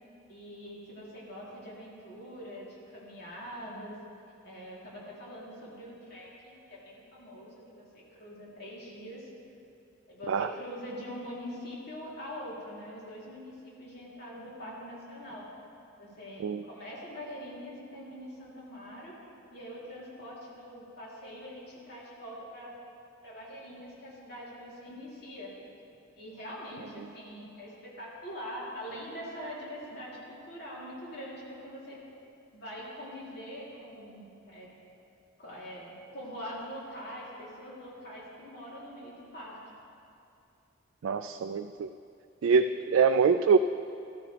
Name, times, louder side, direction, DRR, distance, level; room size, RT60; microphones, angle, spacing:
voice 1, 0.3-4.0 4.4-9.3 10.1-15.5 16.0-19.1 19.5-22.7 23.2-25.5 26.2-27.7 28.0-32.0 32.5-34.7 35.4-39.6, equal, 55° left, -6 dB, 3.3 m, -43 dB
voice 2, 41.0-41.9 42.4-43.6, right 5 dB, 85° right, 7 dB, 0.3 m, -24 dB
14.0 x 13.5 x 3.4 m, 2.7 s
head